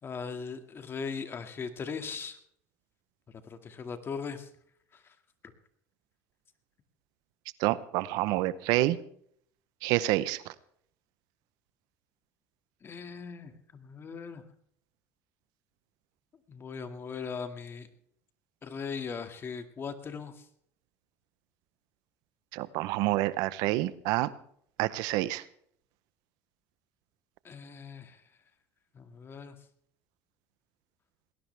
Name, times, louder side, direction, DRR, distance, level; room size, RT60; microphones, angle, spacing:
voice 1, 0.0-2.4 3.3-4.5 4.9-5.1 12.8-14.4 16.5-17.9 18.6-20.5 27.4-28.2 28.9-29.6, left 5 dB, 35° left, 8 dB, 2.1 m, -39 dB
voice 2, 7.6-9.0 9.8-10.4 22.5-24.3 24.8-25.4, right 17 dB, 75° right, 17 dB, 0.8 m, -28 dB
20.0 x 17.5 x 3.4 m, 0.64 s
supercardioid pair, 100°, 7 cm